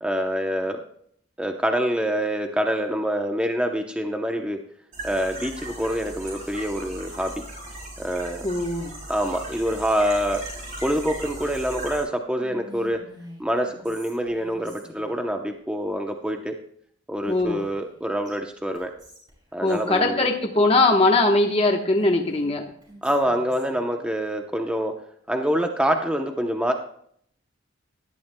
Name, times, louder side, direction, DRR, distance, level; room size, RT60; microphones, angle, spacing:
voice 1, 0.0-0.8 1.4-4.6 5.0-7.3 8.0-8.4 9.1-10.4 10.8-13.0 13.4-16.6 17.1-18.9 19.5-20.3 23.0-24.9 25.3-26.7, equal, 5° right, 4 dB, 0.7 m, -26 dB
sound 1, 4.9-12.0, right 1 dB, 40° right, 5.2 m, -38 dB
voice 2, 8.4-8.9 17.3-17.6 19.6-22.6, left 2 dB, 30° left, 1 dB, 1.1 m, -20 dB
Whispering, 12.3-15.2 17.2-18.0 18.2-18.3 18.7-19.9 21.7-23.8, equal, 20° right, 5.9 m, -47 dB
18.0 x 12.0 x 2.2 m, 0.65 s
head